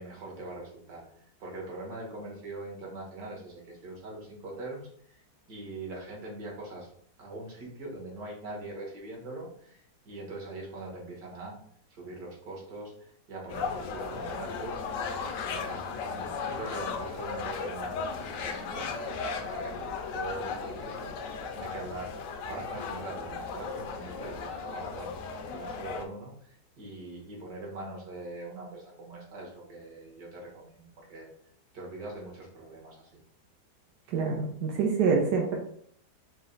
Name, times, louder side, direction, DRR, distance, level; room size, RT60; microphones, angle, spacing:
voice 1, 0.0-5.2 5.5-6.9 7.2-11.6 11.9-15.1 15.3-31.3 31.7-33.2, right 2 dB, 65° right, -2 dB, 1.8 m, -42 dB
sound 1, 13.5-26.0, left 5 dB, 65° left, 0.8 m, -36 dB
voice 2, 34.1-35.6, right 5 dB, 90° right, -1 dB, 1.3 m, -26 dB
4.8 x 2.1 x 3.8 m, 0.62 s
omnidirectional pair, 1.7 m